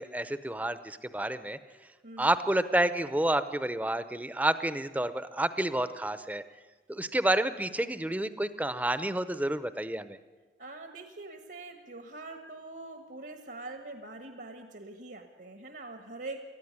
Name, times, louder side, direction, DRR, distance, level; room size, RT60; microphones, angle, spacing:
voice 1, 0.0-1.6 2.2-6.4 6.9-10.2, right 1 dB, 10° right, 12 dB, 0.6 m, -29 dB
voice 2, 2.0-2.3 10.6-16.4, right 2 dB, 70° right, 6 dB, 1.5 m, -44 dB
19.5 x 14.0 x 9.6 m, 1.4 s
head